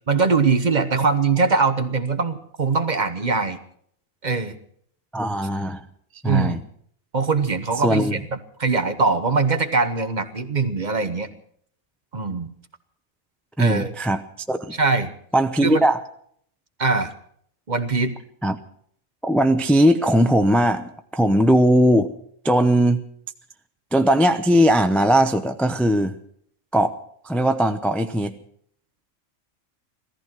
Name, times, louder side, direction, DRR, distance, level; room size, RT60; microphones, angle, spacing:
voice 1, 0.1-3.6 4.2-4.6 6.2-6.6 7.1-8.2 8.6-11.3 12.1-12.5 13.6-13.9 14.7-15.1 15.6-15.9 16.8-17.1 17.7-18.2, right 4 dB, 35° right, 9 dB, 1.1 m, -22 dB
voice 2, 5.1-5.8 6.2-6.6 7.8-8.2 13.6-14.2 14.5-14.7 15.3-16.0 18.4-18.6 19.2-22.1 22.4-23.0 23.9-26.2 26.7-26.9 27.2-28.4, equal, ahead, 8 dB, 0.4 m, -19 dB
16.5 x 14.5 x 6.0 m, 0.65 s
omnidirectional pair, 1.4 m